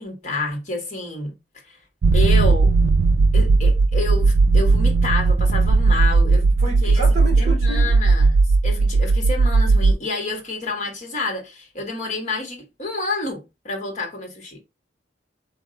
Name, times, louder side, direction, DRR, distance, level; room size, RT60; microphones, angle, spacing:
voice 1, 0.0-1.3 1.7-1.8 2.1-2.7 3.3-6.5 6.8-7.0 7.4-8.4 8.6-14.6, left 3 dB, 40° left, 1.4 m, -29 dB
sound 1, 2.0-9.9, right 3 dB, 60° right, 0.3 m, -16 dB
voice 2, 6.3-8.0, right 3 dB, 35° right, 2.0 m, -31 dB
4.2 x 2.7 x 3.7 m
head